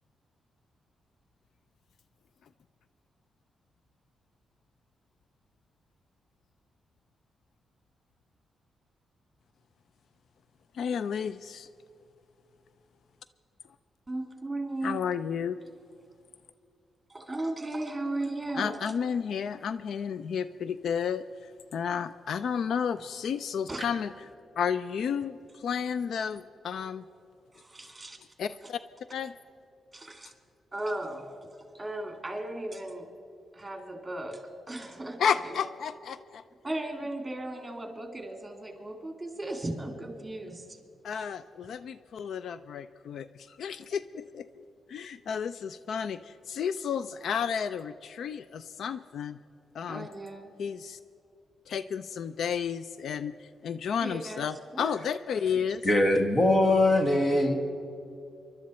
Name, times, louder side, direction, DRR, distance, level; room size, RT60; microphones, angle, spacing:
voice 1, 10.7-11.7 14.8-15.6 18.5-24.1 24.6-27.0 28.4-28.8 29.1-29.3 35.2-36.4 41.0-44.5 44.9-49.4 49.7-50.1 50.6-51.0 51.7-55.8, left 7 dB, 70° left, 14 dB, 0.4 m, -32 dB
voice 2, 14.1-15.0 17.1-18.8 23.7-23.9 27.5-28.2 29.9-30.3 30.7-33.1 33.5-34.4 34.7-35.2 35.4-35.5 36.6-40.8 49.9-50.4 54.0-54.9, right 2 dB, 15° right, 4 dB, 2.4 m, -36 dB
voice 3, 55.8-57.5, left 1 dB, 45° left, 3 dB, 1.8 m, -23 dB
24.5 x 12.0 x 4.3 m, 2.7 s
cardioid pair, 100°, 0 cm